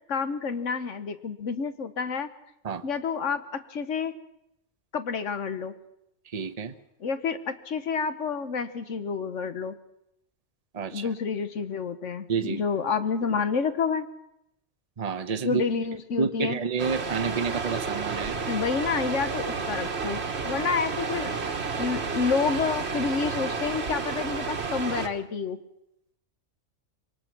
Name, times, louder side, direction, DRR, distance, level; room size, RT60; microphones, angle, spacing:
voice 1, 0.1-2.3 2.8-4.1 4.9-5.7 7.0-9.8 10.9-14.1 15.4-16.6 18.5-21.3 21.8-25.6, left 5 dB, 75° left, 11 dB, 1.5 m, -29 dB
voice 2, 6.3-6.7 10.7-11.0 12.3-12.6 15.0-15.6 16.2-18.4, right 6 dB, 35° right, 9 dB, 0.9 m, -29 dB
sound 1, 16.8-25.1, right 4 dB, 60° right, 1.6 m, -31 dB
23.5 x 18.5 x 6.1 m, 0.81 s
omnidirectional pair, 1.3 m